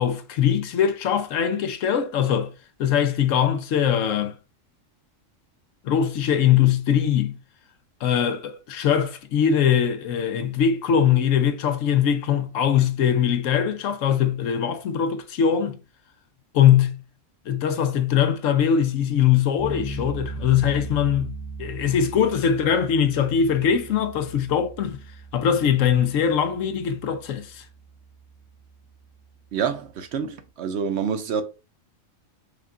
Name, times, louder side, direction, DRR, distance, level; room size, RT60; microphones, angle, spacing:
voice 1, 0.0-2.5 2.8-4.3 5.8-7.4 8.0-15.8 16.5-17.0 17.5-25.0 25.3-27.6, left 8 dB, 75° left, 1.0 m, -21 dB
sound 1, 19.6-30.5, right 2 dB, 40° left, 0.9 m, -39 dB
voice 2, 29.5-31.4, right 7 dB, 65° right, 0.8 m, -27 dB
5.0 x 2.4 x 3.6 m
omnidirectional pair, 1.4 m